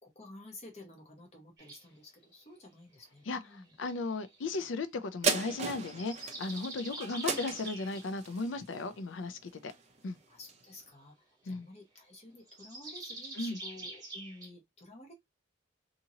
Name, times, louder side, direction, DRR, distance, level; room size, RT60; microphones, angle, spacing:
voice 1, 0.0-3.7 10.3-15.1, left 2 dB, 35° left, 0.9 m, -52 dB
sound 1, 1.6-1.8 3.4-4.6 5.8-8.1 12.5-14.5, right 2 dB, 20° right, 1.0 m, -45 dB
voice 2, 3.8-9.7 10.0-10.2 11.5-11.7 13.4-13.6, left 3 dB, 75° left, 0.5 m, -36 dB
sound 2, 5.2-10.0 10.5-10.6, right 5 dB, 35° right, 0.5 m, -36 dB
2.7 x 2.6 x 2.8 m
head